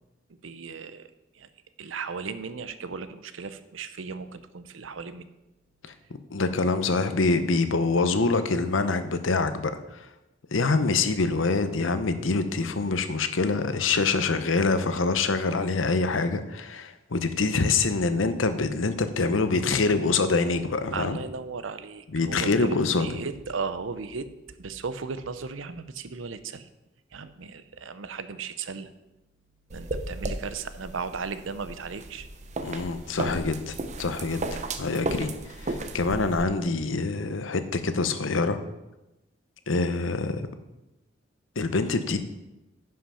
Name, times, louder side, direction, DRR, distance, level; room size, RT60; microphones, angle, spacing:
voice 1, 0.4-1.5 1.8-5.3 19.7-19.9 20.9-24.3 24.6-26.7 27.1-28.9 29.7-32.3, right 5 dB, 80° right, 12 dB, 0.7 m, -36 dB
voice 2, 6.3-10.1 10.5-21.2 22.1-23.1 32.6-34.5 34.8-38.6 39.7-40.4 41.6-42.2, left 3 dB, 80° left, 10 dB, 0.8 m, -25 dB
sound 1, 29.7-36.4, right 2 dB, 40° right, 0.7 m, -34 dB
10.0 x 5.8 x 5.7 m, 0.97 s
head